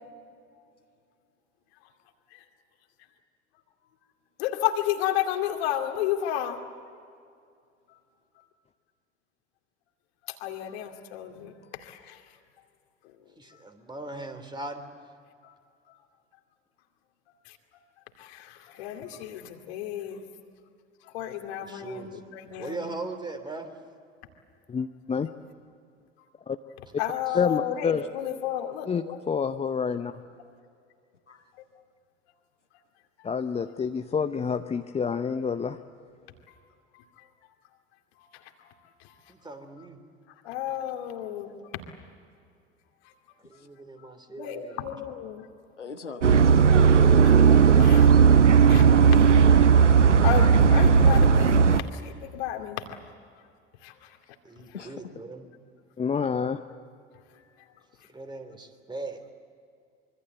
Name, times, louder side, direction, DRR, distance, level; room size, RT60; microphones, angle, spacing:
voice 1, 4.4-6.6 10.3-11.5 11.8-12.2 15.4-15.5 17.5-17.6 18.2-20.2 21.1-22.9 27.0-29.2 36.9-37.0 38.3-38.7 40.4-41.8 44.4-45.5 47.2-47.3 47.8-48.1 48.7-48.8 49.1-49.2 50.2-53.0 53.8-54.0, left 11 dB, 60° left, 5 dB, 2.5 m, -32 dB
voice 2, 13.4-14.8 21.6-22.2 22.6-23.7 27.3-27.4 39.3-40.0 43.4-44.8 54.4-55.5 58.1-59.2, right 2 dB, 10° right, 7 dB, 3.2 m, -39 dB
voice 3, 24.7-25.3 26.5-26.6 27.3-28.1 28.9-30.1 33.2-35.8 56.0-56.6, left 6 dB, 20° left, 7 dB, 0.8 m, -28 dB
voice 4, 45.8-47.1 54.7-55.1, left 5 dB, 85° left, 6 dB, 1.4 m, -41 dB
sound 1, 46.2-51.8, right 6 dB, 85° right, 0.7 m, -16 dB
25.5 x 24.0 x 8.0 m, 2.3 s
figure-of-eight pair, 70°, 35 cm